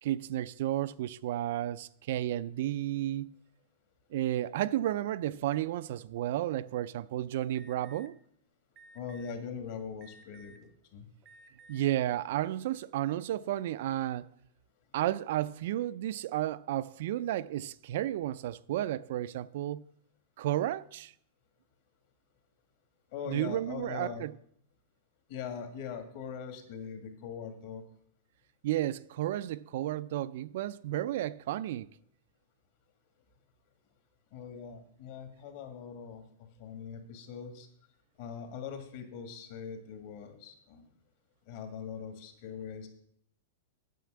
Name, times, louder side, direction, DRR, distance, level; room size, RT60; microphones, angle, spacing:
voice 1, 0.0-3.3 4.1-8.1 11.7-14.3 14.9-19.8 20.4-21.1 23.3-24.3 28.6-31.9, right 13 dB, 55° right, 0.4 m, -32 dB
Alarm, 7.5-8.1 8.8-9.3 10.0-10.7 11.2-11.8, right 2 dB, 25° right, 0.7 m, -56 dB
voice 2, 8.9-11.1 23.1-24.2 25.3-27.8 34.3-36.2 36.6-37.7 38.2-40.9 41.5-42.9, left 7 dB, 50° left, 1.9 m, -42 dB
9.2 x 5.9 x 7.5 m
supercardioid pair, 165°, 0 cm